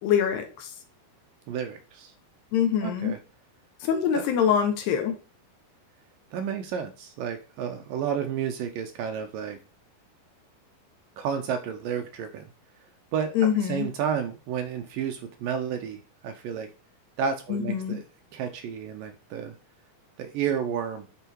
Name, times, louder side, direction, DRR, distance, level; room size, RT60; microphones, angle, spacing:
voice 1, 0.0-0.7 2.5-3.1 3.8-5.1 13.3-13.9 17.5-18.0, left 8 dB, 80° left, 6 dB, 3.5 m, -24 dB
voice 2, 1.5-2.1 2.8-3.2 4.1-4.2 6.3-9.6 11.2-12.4 13.1-13.3 13.6-16.7 17.2-18.0 18.3-19.5 20.2-21.0, right 7 dB, 75° right, 6 dB, 2.1 m, -31 dB
10.5 x 4.7 x 4.5 m, 0.35 s
omnidirectional pair, 4.7 m